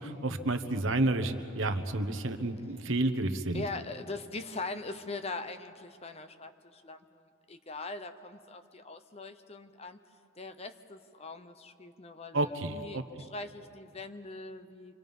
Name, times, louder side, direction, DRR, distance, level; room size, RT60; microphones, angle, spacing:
voice 1, 0.0-3.6 12.3-13.0, right 2 dB, 65° right, 8 dB, 1.2 m, -30 dB
voice 2, 3.5-10.0 10.4-14.9, left 3 dB, 30° left, 9 dB, 0.8 m, -41 dB
27.0 x 25.5 x 5.4 m, 2.5 s
head